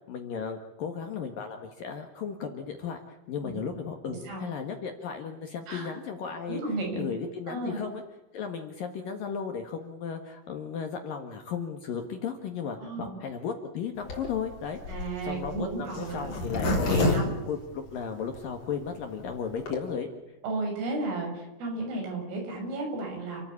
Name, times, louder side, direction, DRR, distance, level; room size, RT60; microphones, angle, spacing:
voice 1, 0.1-6.6 6.9-8.0 8.3-14.8 15.2-17.2 17.5-20.1, left 6 dB, 60° left, 4 dB, 2.7 m, -35 dB
voice 2, 4.1-4.4 5.7-5.9 6.5-7.1 7.5-7.8 12.8-13.1 14.9-16.4 16.9-17.4 20.4-23.4, right 2 dB, 75° right, 1 dB, 9.4 m, -33 dB
Zipper (clothing), 14.0-18.4 18.8-18.9 19.1-19.2 19.4-19.8, left 2 dB, 40° left, 5.0 m, -29 dB
29.5 x 14.0 x 8.6 m, 1.0 s
omnidirectional pair, 5.8 m